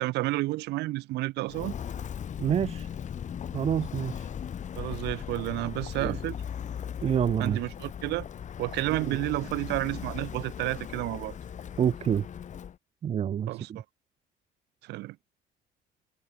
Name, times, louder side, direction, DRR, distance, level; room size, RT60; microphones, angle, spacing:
voice 1, 0.0-1.7 4.8-6.4 7.4-8.3 8.6-11.3 13.5-13.8 14.8-15.2, right 19 dB, 85° right, 1.9 m, -31 dB
Walk footsteps, 1.5-12.7, left 8 dB, 45° left, 3.4 m, -38 dB
voice 2, 2.4-2.9 3.5-4.1 6.0-6.2 7.0-7.6 9.0-9.2 11.8-12.2 13.0-13.8, right 9 dB, 40° right, 0.6 m, -27 dB
cardioid pair, 110°, 17 cm